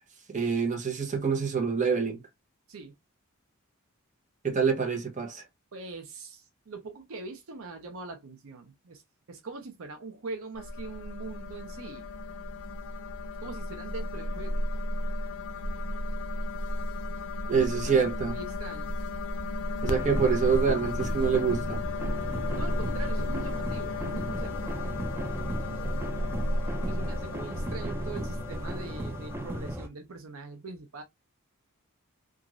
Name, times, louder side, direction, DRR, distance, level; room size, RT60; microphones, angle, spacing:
voice 1, 0.3-2.2 4.4-5.4 17.5-18.4 19.8-21.8, right 6 dB, 35° right, 0.8 m, -26 dB
voice 2, 5.7-9.0 9.3-12.1 13.4-14.7 17.5-18.9 22.5-24.7 26.8-31.0, right 3 dB, 70° right, 0.6 m, -42 dB
sound 1, 10.6-29.8, left 1 dB, 80° left, 0.4 m, -33 dB
sound 2, 19.9-29.9, right 1 dB, 10° right, 0.4 m, -37 dB
3.0 x 2.4 x 2.4 m
head